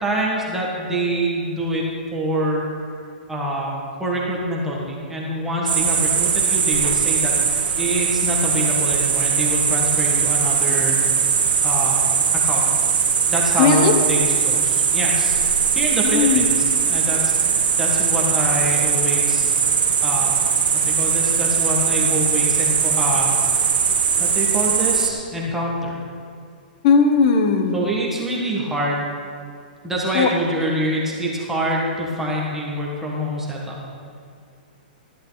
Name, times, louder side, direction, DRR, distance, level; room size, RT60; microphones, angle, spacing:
voice 1, 0.0-1.8 2.1-2.7 3.3-11.0 11.6-12.1 12.3-12.7 13.3-15.4 15.7-16.5 16.9-19.5 20.0-20.5 20.7-23.3 24.2-26.0 27.7-29.1 29.8-33.8, right 1 dB, 5° right, -4 dB, 1.8 m, -25 dB
sound 1, 5.7-25.1, right 6 dB, 90° right, 1.3 m, -20 dB
voice 2, 13.6-13.9 16.0-16.5 26.8-27.8 30.1-30.3, left 5 dB, 45° left, 6 dB, 1.3 m, -17 dB
13.5 x 11.0 x 4.1 m, 2.3 s
hypercardioid pair, 145°, 5 cm